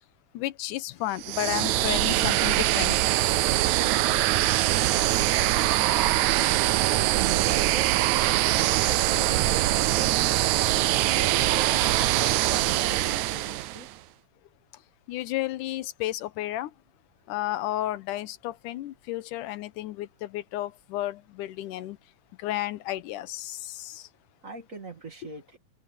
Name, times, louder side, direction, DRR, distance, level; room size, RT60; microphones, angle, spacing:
voice 1, 0.3-3.0 15.1-16.7 17.3-22.0 22.4-24.1, left 15 dB, 80° left, 2.4 m, -32 dB
sound 1, 1.2-13.9, right 16 dB, 80° right, 1.9 m, -23 dB
voice 2, 6.9-10.3 10.8-13.9 24.4-25.6, right 3 dB, 25° right, 2.3 m, -42 dB
omnidirectional pair, 3.7 m